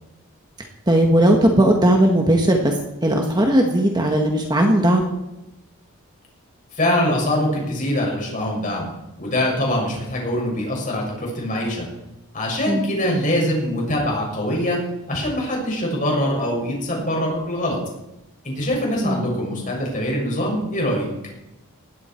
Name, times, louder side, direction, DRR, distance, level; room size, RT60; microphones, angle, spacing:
voice 1, 0.9-5.1 12.7-12.9 19.0-19.3, right 1 dB, 20° right, 2 dB, 1.7 m, -17 dB
voice 2, 6.7-8.9 9.2-11.9 12.3-14.8 15.1-17.8 18.4-21.0, left 1 dB, 35° left, -1 dB, 6.8 m, -23 dB
19.0 x 16.5 x 4.7 m, 0.92 s
head